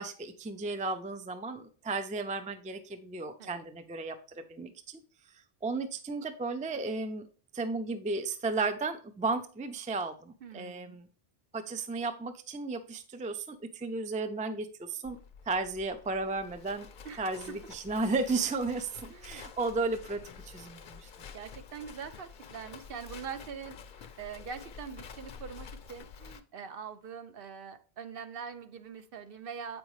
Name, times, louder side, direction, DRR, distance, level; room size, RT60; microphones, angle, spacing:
voice 1, 0.0-5.0 5.6-7.2 7.5-11.1 11.5-15.2 15.5-16.9 17.2-21.1, right 3 dB, 10° right, 9 dB, 0.3 m, -34 dB
voice 2, 10.4-11.0 17.0-17.2 17.5-17.6 19.1-19.4 21.3-29.8, right 6 dB, 65° right, 9 dB, 0.8 m, -43 dB
Livestock farm animals working animals, 15.0-26.4, left 6 dB, 55° left, 0.7 m, -49 dB
8.0 x 5.2 x 3.1 m, 0.38 s
omnidirectional pair, 1.1 m